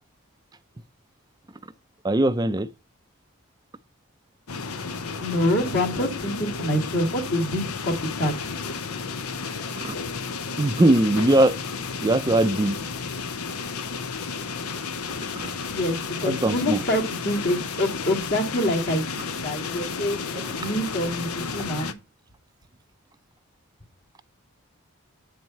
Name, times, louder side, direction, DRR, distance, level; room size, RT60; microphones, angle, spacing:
voice 1, 2.0-2.7 9.8-9.9 10.6-11.6 12.0-12.8 16.2-16.8, right 1 dB, 20° right, 0.4 m, -20 dB
sound 1, 4.5-21.9, left 5 dB, 85° left, 0.8 m, -32 dB
voice 2, 5.2-8.3 15.7-20.2 20.6-21.9, left 1 dB, 50° left, 2.2 m, -26 dB
8.6 x 4.6 x 5.4 m
head